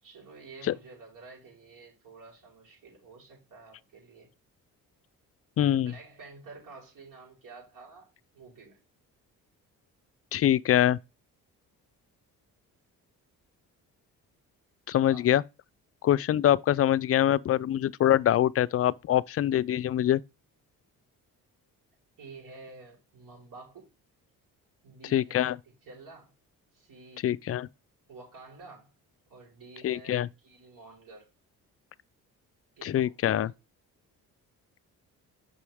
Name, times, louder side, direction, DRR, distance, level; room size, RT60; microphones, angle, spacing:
voice 1, 0.0-4.3 5.8-8.8 14.9-15.3 22.2-23.9 24.8-26.3 26.7-27.3 28.1-28.9 29.3-31.3 32.8-33.5, right 3 dB, 65° right, 4.5 m, -50 dB
voice 2, 5.6-5.9 10.3-11.0 14.9-15.4 16.0-20.2 25.1-25.6 27.2-27.7 29.8-30.3 32.8-33.5, left 11 dB, 40° left, 0.4 m, -24 dB
6.7 x 5.6 x 3.5 m
cardioid pair, 85°, 35 cm